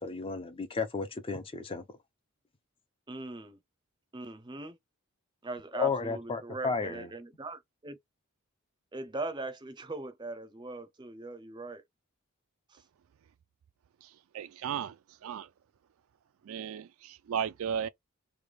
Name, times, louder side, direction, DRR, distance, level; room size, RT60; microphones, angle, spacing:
voice 1, 0.0-2.0 5.7-7.1, left 5 dB, 25° left, 0.4 m, -33 dB
voice 2, 3.1-3.6 4.1-4.8 5.4-8.0 8.9-11.8 12.7-12.8, right 2 dB, 20° right, 0.5 m, -40 dB
voice 3, 14.3-14.9 15.2-15.5 16.5-17.9, right 8 dB, 75° right, 0.3 m, -34 dB
3.3 x 2.2 x 3.1 m
head